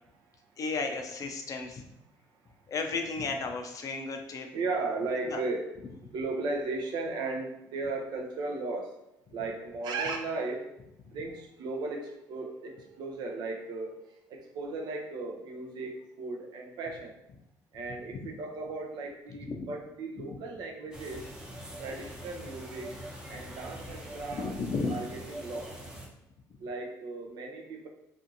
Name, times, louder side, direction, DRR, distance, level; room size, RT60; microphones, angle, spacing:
voice 1, 0.6-1.9 2.7-4.5 5.2-5.4 18.1-18.2 19.5-19.6 20.2-20.4 24.3-24.9, left 4 dB, 45° left, 4 dB, 0.5 m, -34 dB
voice 2, 4.5-5.7 6.1-8.9 9.3-10.7 11.1-14.0 14.3-17.1 17.7-21.3 21.8-22.9 23.3-24.5 24.9-25.7 26.6-27.9, right 3 dB, 65° right, 2 dB, 0.5 m, -36 dB
sound 1, 20.9-26.1, right 1 dB, 10° right, 0.7 m, -43 dB
2.6 x 2.4 x 2.6 m, 0.84 s
supercardioid pair, 70°, 8 cm